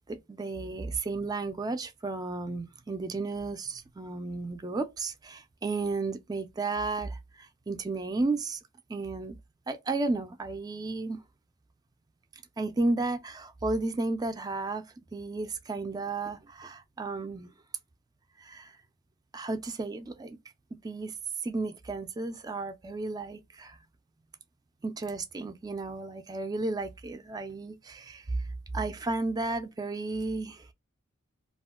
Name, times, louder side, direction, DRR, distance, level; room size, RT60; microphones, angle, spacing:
voice 1, 0.1-8.6 8.9-9.4 9.7-11.2 12.6-14.8 15.1-17.5 18.4-18.7 19.3-20.4 20.8-21.1 21.4-23.8 24.8-28.4 28.7-30.7, right 3 dB, 20° right, 0.3 m, -33 dB
2.4 x 2.1 x 3.3 m
head